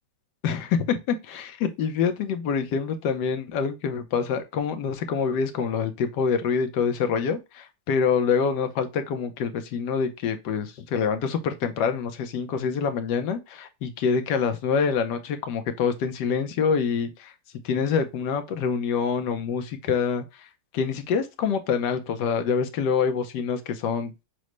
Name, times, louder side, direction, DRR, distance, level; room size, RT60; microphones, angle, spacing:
voice 1, 0.4-17.3 17.6-20.5 20.7-24.1, left 6 dB, 80° left, 1.3 m, -26 dB
6.2 x 2.1 x 3.0 m
omnidirectional pair, 1.9 m